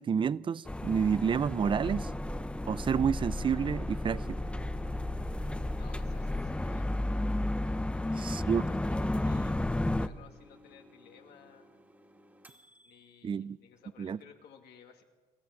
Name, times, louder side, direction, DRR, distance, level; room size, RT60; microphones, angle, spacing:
voice 1, 0.0-2.1 2.7-4.2 8.2-8.6 13.2-13.6 14.0-14.2, right 7 dB, 30° right, 0.5 m, -29 dB
sound 1, 0.6-10.1, left 1 dB, 5° left, 0.7 m, -33 dB
sound 2, 3.5-13.3, equal, 10° right, 2.3 m, -60 dB
voice 2, 5.7-6.9 7.9-11.7 12.8-15.0, left 7 dB, 75° left, 2.5 m, -56 dB
27.5 x 14.0 x 7.2 m
cardioid pair, 110°, 17 cm